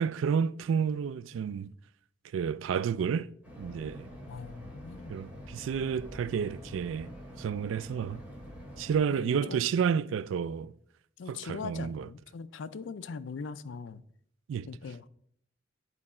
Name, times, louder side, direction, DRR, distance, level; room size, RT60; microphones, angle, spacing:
voice 1, 0.0-1.7 2.3-3.3 3.6-4.1 5.1-7.1 7.4-8.2 8.8-10.7 11.3-12.1 14.5-14.7, right 7 dB, 90° right, 0.3 m, -30 dB
sound 1, 3.4-9.0, equal, 10° right, 2.4 m, -46 dB
voice 2, 4.3-5.2 9.2-9.6 11.2-14.0 14.7-15.0, left 5 dB, 70° left, 0.4 m, -41 dB
9.8 x 4.6 x 4.2 m
head